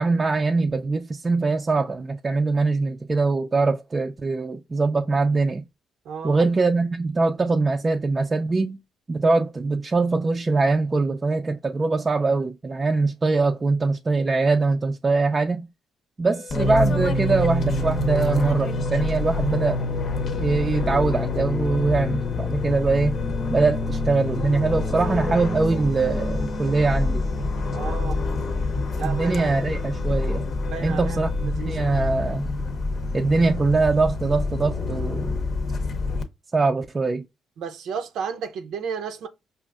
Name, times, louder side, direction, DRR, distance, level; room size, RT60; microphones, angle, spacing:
voice 1, 0.0-5.6 6.2-8.8 9.1-15.7 16.2-19.8 20.3-23.2 23.5-27.2 28.7-30.4 30.8-32.5 33.1-35.3 36.5-37.2, right 3 dB, 30° right, 0.4 m, -22 dB
voice 2, 6.1-6.4 27.7-28.2 28.9-29.5 30.6-32.0 37.6-39.3, right 6 dB, 80° right, 0.5 m, -33 dB
sound 1, 16.3-31.5, left 7 dB, 85° left, 0.9 m, -43 dB
Fixed-wing aircraft airplane, 16.5-36.2, left 2 dB, 55° left, 0.7 m, -26 dB
5.1 x 2.4 x 2.4 m
cardioid pair, 90°, 0 cm